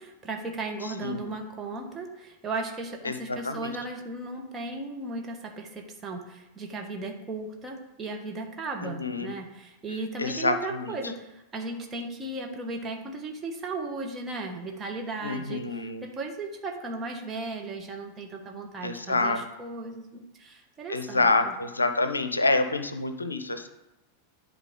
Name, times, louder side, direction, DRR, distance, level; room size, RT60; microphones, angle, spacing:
voice 1, 0.0-21.5, right 3 dB, 20° right, 2 dB, 1.2 m, -36 dB
voice 2, 8.8-9.3 10.2-11.0 15.2-16.0 18.8-19.4 20.9-23.7, left 3 dB, 80° left, 9 dB, 0.6 m, -27 dB
11.0 x 4.0 x 3.8 m, 0.98 s
figure-of-eight pair, 90°, 0 cm